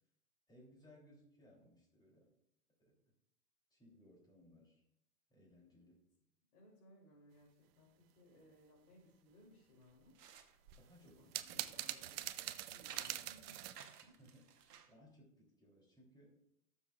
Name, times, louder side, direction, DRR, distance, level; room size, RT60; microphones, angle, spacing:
voice 1, 0.5-2.3 2.8-3.0 3.7-4.8 5.3-6.1 10.8-11.7 14.0-16.4, equal, 10° left, -2 dB, 3.1 m, -64 dB
voice 2, 6.5-10.2 11.0-12.3 12.7-13.7 14.0-14.1, left 1 dB, 65° left, -5 dB, 3.4 m, -64 dB
sound 1, 9.8-15.0, right 7 dB, 80° right, 1.2 m, -57 dB
sound 2, 10.7-13.8, right 14 dB, 40° right, 0.5 m, -44 dB
17.0 x 7.1 x 2.4 m, 0.78 s
hypercardioid pair, 120°, 46 cm